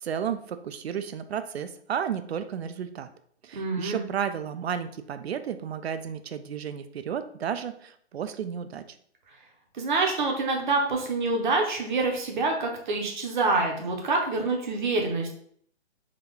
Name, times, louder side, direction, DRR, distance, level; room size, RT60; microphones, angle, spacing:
voice 1, 0.0-3.1 3.4-9.0, right 8 dB, 65° right, 11 dB, 0.5 m, -33 dB
voice 2, 3.5-4.0 9.7-15.3, right 3 dB, 45° right, 2 dB, 0.9 m, -26 dB
3.7 x 2.8 x 3.5 m, 0.63 s
hypercardioid pair, 150°, 34 cm